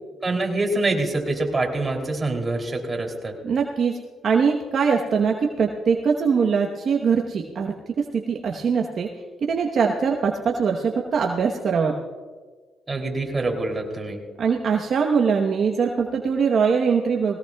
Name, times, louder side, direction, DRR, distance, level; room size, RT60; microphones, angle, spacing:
voice 1, 0.2-3.3 12.9-14.2, right 2 dB, 25° right, 1 dB, 3.1 m, -25 dB
voice 2, 3.4-3.9 4.2-9.1 9.4-12.0 14.4-17.4, right 6 dB, 55° right, 1 dB, 1.1 m, -22 dB
20.5 x 17.5 x 2.3 m, 1.4 s
cardioid pair, 90°, 0 cm